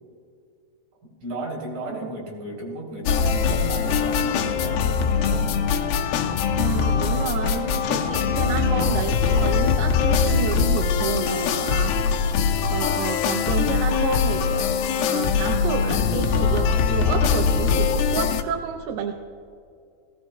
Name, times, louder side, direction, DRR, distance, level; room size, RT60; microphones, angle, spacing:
voice 1, 1.2-5.6, right 1 dB, 60° right, -3 dB, 5.2 m, -34 dB
sound 1, 3.1-18.4, left 6 dB, 85° left, 2.8 m, -22 dB
voice 2, 6.6-11.9 12.7-19.1, right 7 dB, 80° right, 2 dB, 2.6 m, -30 dB
19.5 x 17.0 x 2.3 m, 2.4 s
omnidirectional pair, 4.7 m